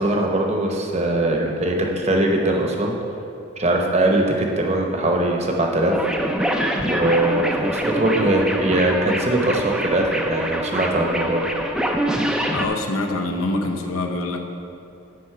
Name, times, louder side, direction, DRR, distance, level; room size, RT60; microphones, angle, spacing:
voice 1, 0.0-2.9 3.6-5.9 6.9-11.5, right 1 dB, 30° right, 1 dB, 0.9 m, -21 dB
sound 1, 5.9-12.7, equal, 5° right, 0.4 m, -25 dB
voice 2, 12.5-14.4, left 2 dB, 80° left, 3 dB, 0.8 m, -25 dB
9.5 x 4.0 x 6.6 m, 2.6 s
head